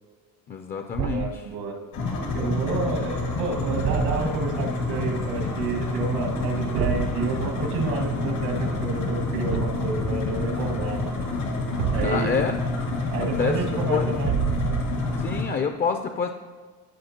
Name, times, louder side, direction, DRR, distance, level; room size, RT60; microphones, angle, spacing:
voice 1, 0.5-1.4 12.0-12.5 13.4-13.6 13.9-14.1 15.2-16.3, left 5 dB, 25° left, 7 dB, 0.4 m, -26 dB
Thump thud, 0.9-1.5 3.8-4.5 6.7-7.2 9.5-10.0 11.8-12.4 14.2-15.2, right 9 dB, 55° right, 0.5 m, -28 dB
voice 2, 1.1-1.8 2.3-11.1 11.9-12.4 13.1-14.3, right 4 dB, 85° right, 1 dB, 1.9 m, -29 dB
sound 1, 1.9-15.4, left 2 dB, 80° left, 2.0 m, -28 dB
15.0 x 5.8 x 2.9 m, 1.5 s
cardioid pair, 115°, 35 cm